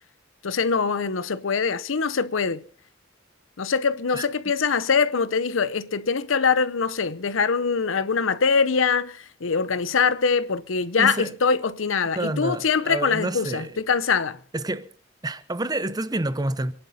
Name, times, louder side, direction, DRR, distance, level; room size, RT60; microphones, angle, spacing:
voice 1, 0.4-2.6 3.6-14.4, left 5 dB, 85° left, 0.7 m, -23 dB
voice 2, 11.0-11.3 12.2-13.8 14.5-14.9 15.2-16.7, right 2 dB, 20° right, 0.7 m, -28 dB
26.5 x 11.5 x 4.1 m
head